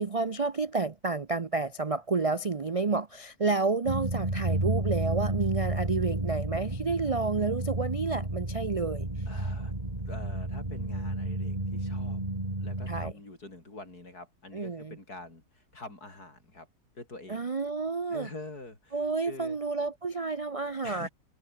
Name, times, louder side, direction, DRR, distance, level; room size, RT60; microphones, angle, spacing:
voice 1, 0.0-9.1 12.9-13.1 14.5-15.0 17.3-18.3 18.9-21.1, right 4 dB, 40° right, 0.5 m, -30 dB
sound 1, 3.9-13.1, right 1 dB, 20° right, 3.6 m, -32 dB
voice 2, 9.3-9.7 10.1-12.2 12.6-16.7 16.9-17.5 18.1-19.6 20.8-21.1, left 2 dB, 70° left, 6.6 m, -45 dB
omnidirectional pair, 1.7 m